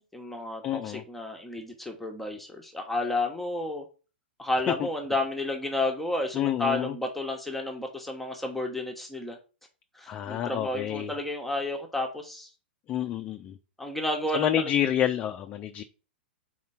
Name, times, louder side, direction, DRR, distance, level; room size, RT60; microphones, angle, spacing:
voice 1, 0.1-3.8 4.4-9.4 9.9-12.5 13.8-14.7, left 2 dB, 5° left, 2 dB, 1.1 m, -31 dB
voice 2, 0.6-1.0 4.7-4.9 6.3-6.9 10.1-11.1 12.9-13.6 14.3-15.8, left 11 dB, 30° left, 7 dB, 0.5 m, -28 dB
4.3 x 4.3 x 5.7 m, 0.34 s
hypercardioid pair, 110°, 6 cm